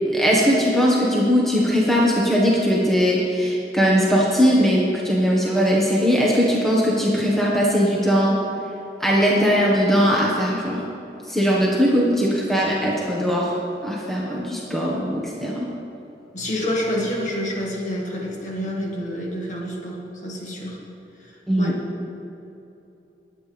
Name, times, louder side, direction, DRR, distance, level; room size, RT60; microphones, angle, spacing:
voice 1, 0.0-8.4 9.0-10.8 11.3-13.5 13.8-15.7 21.5-21.7, equal, ahead, -5 dB, 1.4 m, -19 dB
voice 2, 16.3-20.8 21.2-21.8, equal, 45° left, -3 dB, 2.1 m, -28 dB
20.0 x 8.8 x 3.4 m, 2.9 s
head